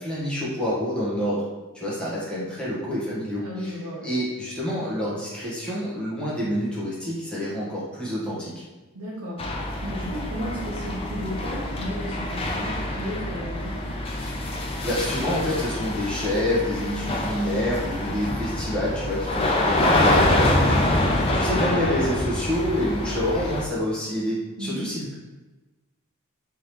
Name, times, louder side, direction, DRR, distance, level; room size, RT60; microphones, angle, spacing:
voice 1, 0.0-1.4 1.7-3.7 4.0-8.5 14.5-20.9 21.3-25.2, left 1 dB, 5° left, -8 dB, 1.2 m, -27 dB
voice 2, 3.4-4.1 8.9-9.4 9.8-13.8 21.0-21.6 24.6-24.9, equal, 70° right, -8 dB, 0.9 m, -34 dB
sound 1, 9.4-23.6, left 1 dB, 25° left, 0.4 m, -25 dB
3.8 x 3.3 x 3.0 m, 1.2 s
head